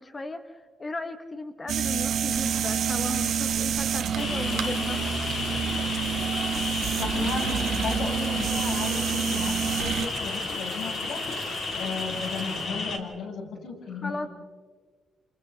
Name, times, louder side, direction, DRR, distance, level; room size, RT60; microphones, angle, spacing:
voice 1, 0.0-5.0 7.1-7.5 13.9-14.3, left 2 dB, 20° left, 8 dB, 0.9 m, -36 dB
sound 1, 1.7-10.1, right 8 dB, 70° right, 1.0 m, -28 dB
sound 2, 2.3-12.7, right 7 dB, 50° right, 5.5 m, -42 dB
sound 3, 4.2-13.0, left 4 dB, 55° left, 2.7 m, -32 dB
voice 2, 7.0-11.2 11.7-14.3, left 4 dB, 90° left, -2 dB, 7.3 m, -35 dB
30.0 x 28.0 x 3.8 m, 1.5 s
wide cardioid pair, 170°, 0 cm